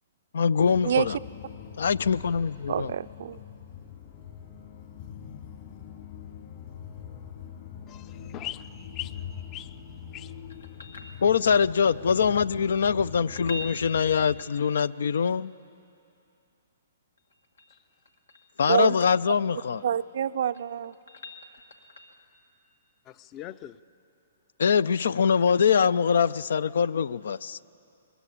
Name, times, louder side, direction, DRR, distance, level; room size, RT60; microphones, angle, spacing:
voice 1, 0.3-1.2 1.8-2.9 11.2-15.5 18.6-19.8 24.6-27.6, left 6 dB, 75° left, 0.5 m, -23 dB
sound 1, 0.6-14.4, left 8 dB, 50° left, 2.9 m, -43 dB
voice 2, 2.7-3.4 18.7-19.0 19.8-20.9, right 9 dB, 65° right, 0.5 m, -26 dB
voice 3, 7.9-9.2 9.5-9.8 10.1-10.3 23.1-23.8, left 13 dB, 30° left, 0.6 m, -40 dB
sound 2, 10.5-11.7 13.2-15.0 17.2-18.8 20.2-22.3 25.1-25.2, left 1 dB, 90° left, 2.0 m, -44 dB
21.5 x 21.5 x 8.6 m
hypercardioid pair, 135°, 0 cm